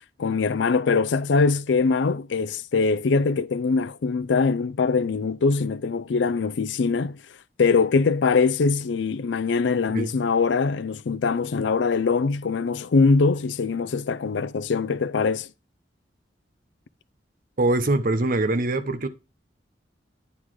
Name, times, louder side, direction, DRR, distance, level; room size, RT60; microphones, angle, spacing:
voice 1, 0.2-7.2 7.6-15.5, left 4 dB, 80° left, 0.5 m, -22 dB
voice 2, 17.6-19.1, right 2 dB, 50° right, 0.8 m, -23 dB
9.7 x 3.9 x 4.7 m
head